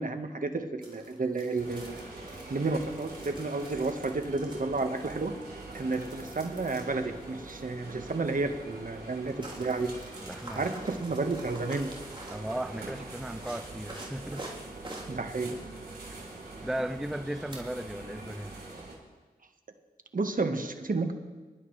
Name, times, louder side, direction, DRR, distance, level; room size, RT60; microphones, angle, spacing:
voice 1, 0.0-2.0 2.5-5.3 5.7-9.9 10.5-11.9 15.1-15.6 20.1-21.1, right 3 dB, 55° right, 1.4 m, -31 dB
sound 1, 0.8-17.9, right 1 dB, 30° right, 3.4 m, -49 dB
sound 2, 1.6-18.9, right 2 dB, 80° right, 3.6 m, -44 dB
voice 2, 10.2-10.8 12.3-14.5 16.6-18.6, right 1 dB, ahead, 0.4 m, -36 dB
23.0 x 11.5 x 3.3 m
cardioid pair, 45°, 16 cm